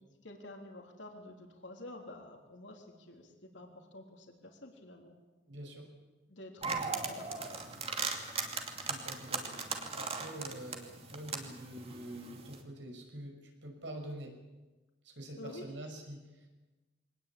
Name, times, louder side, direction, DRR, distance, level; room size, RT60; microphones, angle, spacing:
voice 1, 0.2-5.1 6.3-7.4 15.4-15.7, left 1 dB, 70° left, 2 dB, 3.5 m, -49 dB
voice 2, 5.5-5.9 8.9-9.6 9.9-14.4 15.0-16.5, right 1 dB, 75° right, 3 dB, 5.8 m, -46 dB
sound 1, 6.6-12.6, right 4 dB, 35° right, 2.5 m, -38 dB
23.0 x 18.5 x 8.7 m, 1.1 s
head